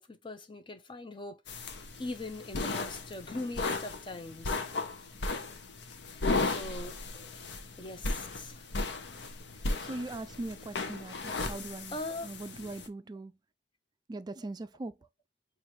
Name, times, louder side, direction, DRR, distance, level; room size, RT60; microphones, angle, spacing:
voice 1, 0.0-4.6 6.4-7.3 7.8-8.7 11.9-12.3, left 2 dB, 30° left, 0.6 m, -41 dB
sound 1, 1.5-12.9, left 3 dB, 85° left, 0.7 m, -36 dB
voice 2, 9.8-12.0 12.2-13.3 14.1-15.0, right 2 dB, 25° right, 0.3 m, -40 dB
4.6 x 2.5 x 2.6 m
head